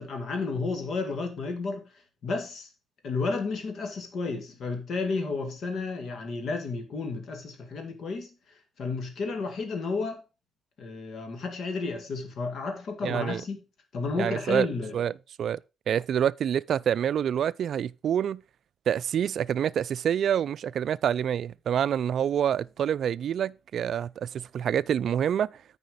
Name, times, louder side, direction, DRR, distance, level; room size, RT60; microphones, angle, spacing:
voice 1, 0.0-1.9 2.2-2.7 3.0-8.3 8.8-10.2 10.8-13.6 13.9-15.0, left 4 dB, 65° left, 2.1 m, -32 dB
voice 2, 13.0-13.4 14.2-14.7 14.9-15.1 15.4-15.6 15.9-18.4 18.9-25.5, right 9 dB, 65° right, 0.3 m, -27 dB
9.3 x 4.9 x 5.0 m
supercardioid pair, 70°, 0 cm